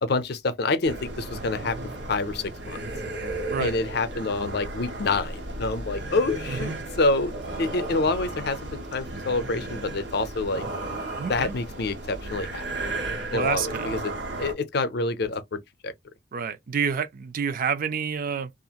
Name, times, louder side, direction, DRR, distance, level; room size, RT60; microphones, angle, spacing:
voice 1, 0.0-1.8 2.1-2.8 3.6-7.3 7.6-10.7 11.3-12.6 13.3-14.1 14.4-15.9, left 3 dB, 60° left, 0.5 m, -27 dB
sound 1, 0.8-14.5, right 2 dB, 75° right, 1.2 m, -34 dB
voice 2, 11.2-11.5 13.3-13.9 16.3-18.5, right 6 dB, 50° right, 0.4 m, -28 dB
2.8 x 2.5 x 2.3 m
head